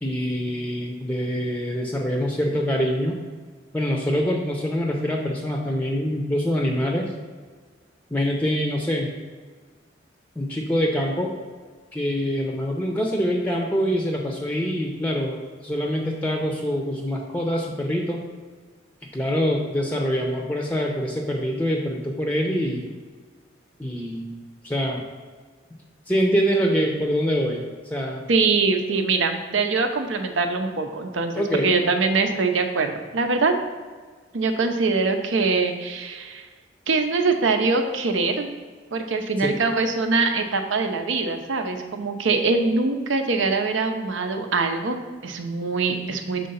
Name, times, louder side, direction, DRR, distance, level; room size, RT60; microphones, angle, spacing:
voice 1, 0.0-3.2 3.7-7.1 8.1-9.1 10.4-11.3 11.9-18.2 19.1-22.9 23.8-24.3 24.6-25.0 26.1-28.2 31.4-31.7 39.4-39.6, equal, 10° left, 0 dB, 0.6 m, -25 dB
voice 2, 28.3-33.5 34.3-36.5 36.9-38.5 38.9-46.5, right 4 dB, 75° right, 6 dB, 0.7 m, -23 dB
6.7 x 3.7 x 5.5 m, 1.5 s
head